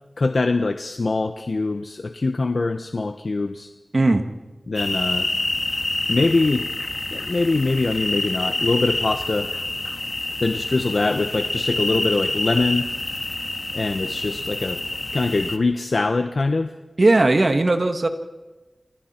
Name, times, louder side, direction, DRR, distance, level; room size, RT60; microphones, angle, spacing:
voice 1, 0.2-3.7 4.7-5.3 6.1-6.7 7.1-9.5 10.4-12.9 13.7-14.8 15.1-16.7, left 3 dB, 60° left, 7 dB, 0.9 m, -23 dB
voice 2, 3.9-4.2 17.0-18.1, right 2 dB, 45° right, 7 dB, 1.8 m, -17 dB
sound 1, 4.7-15.6, left 2 dB, 35° left, 1.6 m, -27 dB
27.5 x 27.5 x 4.4 m, 1.1 s
wide cardioid pair, 75°, 0 cm